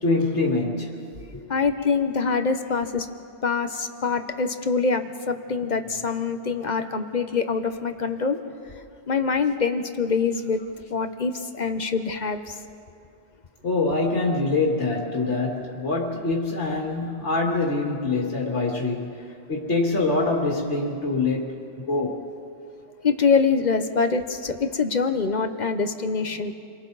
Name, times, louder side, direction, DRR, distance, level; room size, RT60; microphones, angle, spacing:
voice 1, 0.0-0.9 13.6-19.2 19.5-21.6 21.9-22.1, left 3 dB, 70° left, -3 dB, 2.6 m, -24 dB
voice 2, 1.5-3.1 3.4-8.4 9.1-10.6 10.9-12.6 23.0-26.5, left 5 dB, 40° left, 8 dB, 1.0 m, -24 dB
29.0 x 23.5 x 4.1 m, 2.4 s
omnidirectional pair, 1.2 m